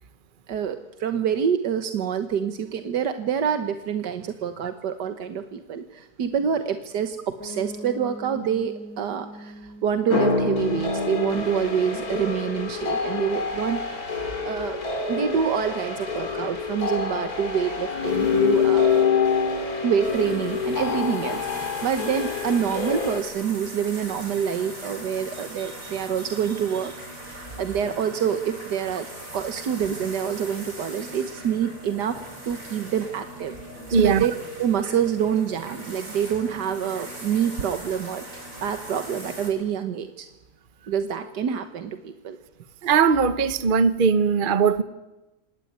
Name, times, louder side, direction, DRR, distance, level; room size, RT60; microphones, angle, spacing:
voice 1, 0.5-13.8 14.2-18.9 19.8-29.1 29.3-33.5 34.0-34.3 34.6-40.3 40.9-42.4, right 8 dB, 90° right, 8 dB, 1.8 m, -27 dB
Piano, 7.4-13.1, right 1 dB, 5° left, 3.1 m, -43 dB
sound 1, 10.1-23.2, left 5 dB, 60° left, 3.6 m, -26 dB
sound 2, 20.0-39.5, right 1 dB, 50° right, 5.4 m, -40 dB
voice 2, 33.9-34.3 42.8-44.8, right 5 dB, 35° right, 12 dB, 1.1 m, -19 dB
27.0 x 18.5 x 9.6 m, 1.0 s
omnidirectional pair, 1.8 m